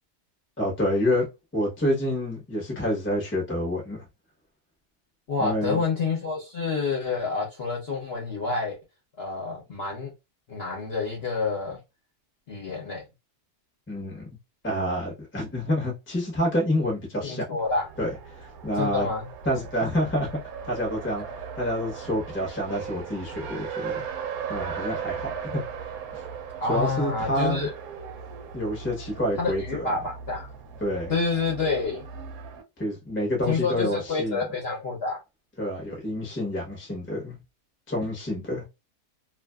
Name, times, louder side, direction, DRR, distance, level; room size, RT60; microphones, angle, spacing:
voice 1, 0.6-1.3 1.5-4.0 5.4-5.8 13.9-14.3 14.6-17.5 18.0-18.1 18.4-19.1 19.4-20.4 20.6-21.2 21.6-24.0 24.5-25.6 26.1-26.2 26.7-27.7 28.5-29.9 30.8-31.1 32.8-34.4 35.6-37.4 37.9-38.6, equal, 10° left, 0.6 m, -28 dB
voice 2, 5.3-8.8 9.2-10.1 10.5-11.8 12.5-13.0 17.2-17.9 18.8-19.3 26.6-27.7 29.4-30.5 31.1-32.0 33.5-35.2, left 4 dB, 50° left, 0.8 m, -28 dB
Race car auto racing, 17.7-32.6, right 6 dB, 70° right, 1.0 m, -38 dB
2.5 x 2.5 x 2.3 m
omnidirectional pair, 1.7 m